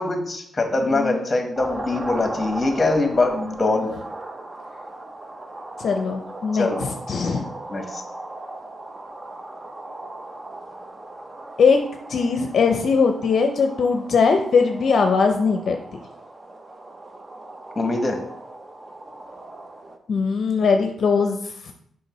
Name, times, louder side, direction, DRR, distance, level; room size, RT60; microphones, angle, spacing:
voice 1, 0.0-3.9 6.6-6.8 7.7-8.0 17.7-18.2, left 2 dB, 30° left, 4 dB, 1.2 m, -23 dB
voice 2, 0.9-1.2 5.8-7.4 11.6-11.8 12.1-15.8 20.1-21.7, left 5 dB, 60° left, 5 dB, 0.5 m, -20 dB
sound 1, 1.6-20.0, right 2 dB, 25° right, 0.7 m, -38 dB
6.3 x 4.8 x 3.1 m, 0.70 s
cardioid pair, 85°, 0 cm